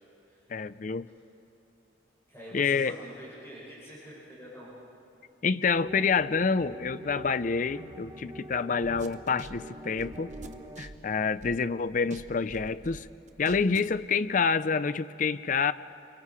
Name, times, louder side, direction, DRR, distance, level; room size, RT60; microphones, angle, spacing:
voice 1, 0.5-1.1 2.5-3.0 5.4-10.3 10.8-13.1 13.4-15.7, left 5 dB, 45° left, 14 dB, 0.5 m, -27 dB
voice 2, 2.3-4.7, equal, 15° left, -9 dB, 7.1 m, -46 dB
sound 1, 5.7-10.8, equal, 25° right, 1.3 m, -44 dB
sound 2, 8.8-11.8 12.1-14.0, right 2 dB, 40° right, 0.9 m, -45 dB
27.5 x 24.5 x 4.8 m, 2.9 s
head